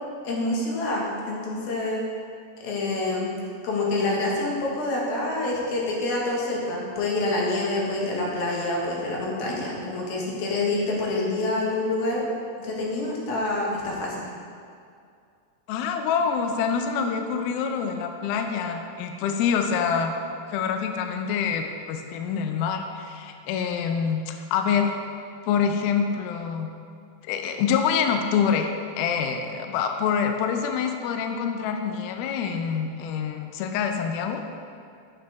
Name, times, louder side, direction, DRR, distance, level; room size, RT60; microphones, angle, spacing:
voice 1, 0.2-2.0 2.6-3.3 3.6-12.2 12.6-14.2, left 2 dB, 65° left, -3 dB, 3.1 m, -27 dB
voice 2, 15.7-20.1 20.5-24.9 25.4-26.7 27.2-28.7 29.0-34.4, left 7 dB, 90° left, 5 dB, 2.1 m, -26 dB
11.5 x 6.8 x 3.4 m, 2.4 s
omnidirectional pair, 5.0 m